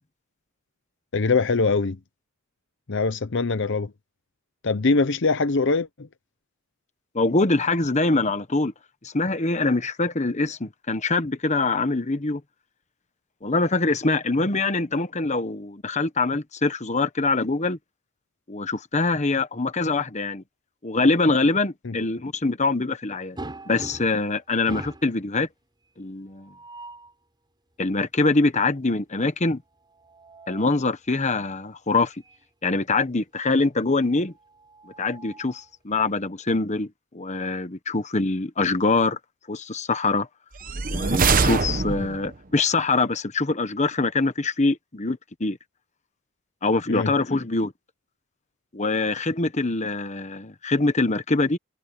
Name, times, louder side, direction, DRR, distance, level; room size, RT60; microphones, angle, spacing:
voice 1, 1.1-2.0 2.9-3.9 4.6-6.1 21.8-22.0 46.9-47.1, left 3 dB, 60° left, 0.8 m, -23 dB
voice 2, 7.1-8.7 9.0-12.4 13.4-17.8 18.5-20.4 20.8-23.4 23.7-25.5 26.0-26.5 27.8-29.6 30.5-32.1 32.6-34.3 35.0-36.9 37.1-39.2 39.5-40.3 40.9-45.6 46.6-47.7 48.7-51.6, left 3 dB, 35° left, 1.2 m, -24 dB
sound 1, 23.4-24.3 24.7-25.2 26.4-27.1 29.8-30.8 32.2-32.4 32.8-32.9 34.4-35.7, right 1 dB, 20° right, 5.5 m, -41 dB
sound 2, 40.6-42.4, right 4 dB, 40° right, 1.0 m, -23 dB
head